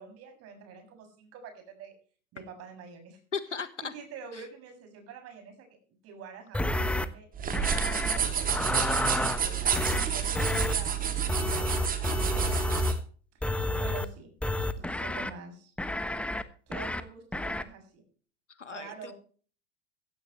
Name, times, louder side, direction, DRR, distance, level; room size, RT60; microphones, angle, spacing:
voice 1, 0.0-1.9 2.3-3.2 3.8-5.8 6.0-11.0 11.4-12.5 13.5-14.3 14.8-15.7 16.7-18.0 18.7-19.1, right 6 dB, 45° right, 6 dB, 7.2 m, -47 dB
voice 2, 3.3-3.9 4.3-4.4 18.6-19.1, left 5 dB, 90° left, 13 dB, 1.6 m, -36 dB
sound 1, 6.5-7.1 7.5-8.2 8.5-9.4 9.7-10.1 10.3-10.7 11.3-13.0 13.4-14.1 14.4-15.3 15.8-16.4 16.7-17.0 17.3-17.6, left 1 dB, 5° left, 1.2 m, -30 dB
sound 2, 7.4-13.0, right 7 dB, 25° right, 2.9 m, -29 dB
16.0 x 15.5 x 3.2 m, 0.42 s
figure-of-eight pair, 90°, 35 cm